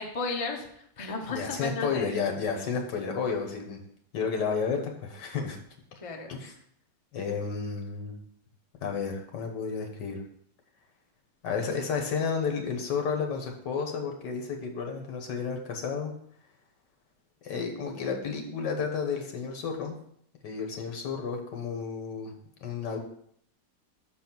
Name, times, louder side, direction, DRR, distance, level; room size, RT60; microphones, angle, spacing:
voice 1, 0.0-2.1 6.0-6.3, left 3 dB, 30° left, 2 dB, 0.7 m, -34 dB
voice 2, 1.3-3.8 4.1-5.6 6.3-6.5 7.1-8.2 8.8-10.2 11.4-16.1 17.4-20.0 20.4-23.0, left 5 dB, 85° left, 3 dB, 1.8 m, -32 dB
6.2 x 4.2 x 6.0 m, 0.67 s
omnidirectional pair, 1.8 m